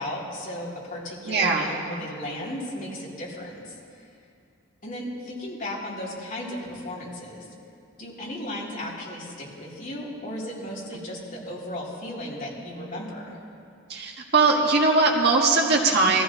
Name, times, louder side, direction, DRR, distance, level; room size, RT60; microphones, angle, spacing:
voice 1, 0.0-3.7 4.0-4.1 4.8-7.5 8.0-13.4, left 1 dB, 45° left, -6 dB, 3.5 m, -35 dB
voice 2, 1.2-1.7 13.9-16.2, right 3 dB, 55° right, 0 dB, 1.6 m, -20 dB
21.0 x 15.0 x 3.1 m, 2.5 s
head